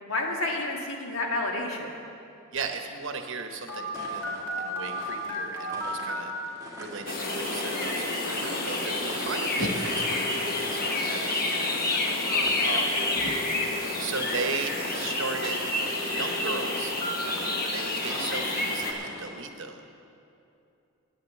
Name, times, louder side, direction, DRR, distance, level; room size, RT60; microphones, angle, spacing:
voice 1, 0.0-1.9 12.3-13.0, left 2 dB, 65° left, 0 dB, 1.7 m, -31 dB
voice 2, 2.5-6.3 6.8-12.9 14.0-15.7 16.0-17.0 17.6-19.8, right 4 dB, 55° right, 6 dB, 1.0 m, -36 dB
Telephone, 3.7-6.2 7.2-7.9 9.8-10.9 12.9-13.9 15.9-17.1, left 2 dB, 10° left, 2.2 m, -36 dB
sound 1, 3.9-19.3, equal, 15° right, 2.1 m, -44 dB
sound 2, 7.1-18.9, left 2 dB, 40° left, 1.2 m, -29 dB
10.5 x 9.1 x 7.5 m, 2.7 s
head